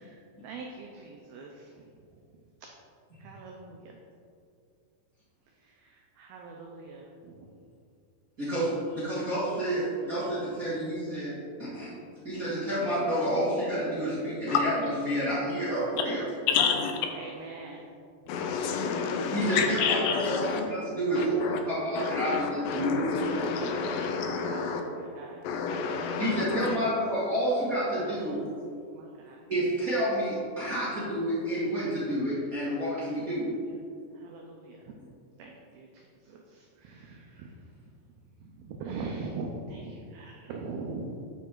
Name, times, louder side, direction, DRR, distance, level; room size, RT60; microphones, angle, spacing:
voice 1, 0.4-0.9 1.3-1.5 3.2-4.0 5.5-7.5 10.4-10.8 17.1-17.8 23.8-25.4 27.9-28.6 28.9-29.5 30.9-31.2 31.6-31.7 32.8-33.6 34.1-35.0 35.4-37.8 38.4-41.1, right 3 dB, 85° right, 0 dB, 2.1 m, -43 dB
voice 2, 8.4-11.9 12.2-14.7 15.0-16.2 19.3-24.0 26.2-28.5 29.5-33.5 34.0-34.1, equal, 40° right, -12 dB, 1.2 m, -29 dB
voice 3, 16.5-17.1 18.3-20.6 21.2-21.6 21.9-24.8 25.4-26.8, left 6 dB, 80° left, 4 dB, 2.6 m, -29 dB
11.0 x 5.2 x 3.8 m, 2.4 s
omnidirectional pair, 5.1 m